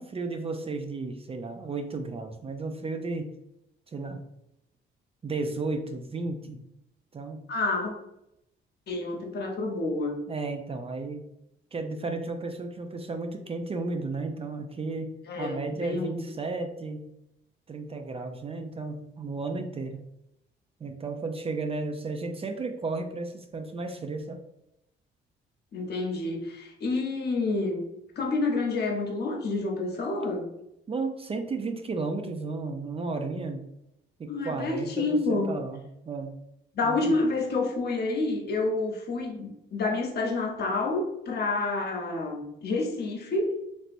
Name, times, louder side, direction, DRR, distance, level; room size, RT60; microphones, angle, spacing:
voice 1, 0.0-3.4 3.9-4.2 5.2-6.6 7.1-7.4 10.3-11.3 11.7-17.1 17.7-20.0 20.8-24.4 30.9-33.7 34.2-36.3 36.8-37.1, right 3 dB, 30° right, 5 dB, 0.4 m, -33 dB
voice 2, 7.5-7.9 8.9-10.2 15.3-16.2 25.7-27.8 28.2-30.4 34.3-35.5 36.7-43.5, left 3 dB, 55° left, 1 dB, 0.8 m, -28 dB
3.2 x 2.8 x 2.5 m, 0.84 s
cardioid pair, 90°, 20 cm